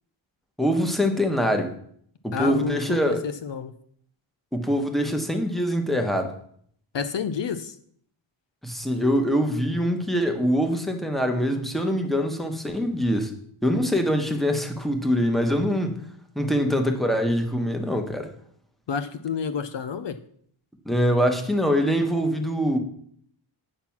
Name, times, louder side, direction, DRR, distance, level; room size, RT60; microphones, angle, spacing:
voice 1, 0.6-1.7 2.2-3.2 4.5-6.3 8.6-13.3 13.6-16.0 16.3-18.3 20.8-22.8, equal, ahead, 5 dB, 1.1 m, -24 dB
voice 2, 2.3-3.7 6.9-7.8 18.9-20.2, left 6 dB, 60° left, 11 dB, 0.7 m, -29 dB
9.0 x 5.9 x 5.8 m, 0.64 s
wide cardioid pair, 115°, 50 cm